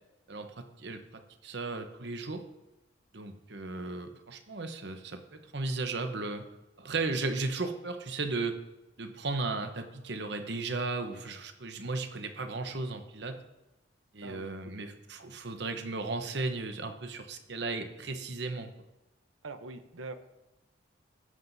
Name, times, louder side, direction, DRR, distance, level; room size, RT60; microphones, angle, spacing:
voice 1, 0.3-2.4 3.1-6.4 6.8-8.6 9.0-13.4 14.1-18.7, right 3 dB, 60° right, 7 dB, 0.9 m, -35 dB
voice 2, 14.2-14.7 19.4-20.1, right 3 dB, 90° right, 10 dB, 0.8 m, -43 dB
17.0 x 7.4 x 2.7 m, 0.99 s
head